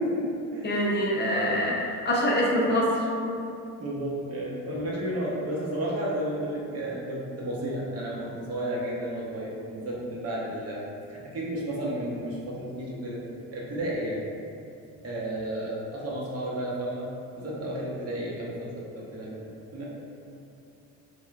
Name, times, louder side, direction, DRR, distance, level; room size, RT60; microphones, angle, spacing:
voice 1, 0.0-0.7 3.8-10.8 11.1-13.2 13.5-14.2 15.0-19.4 19.7-19.8, right 1 dB, 40° right, -4 dB, 0.8 m, -32 dB
voice 2, 0.6-2.9, equal, 30° left, -4 dB, 0.6 m, -25 dB
3.3 x 3.0 x 2.3 m, 2.5 s
supercardioid pair, 80°, 37 cm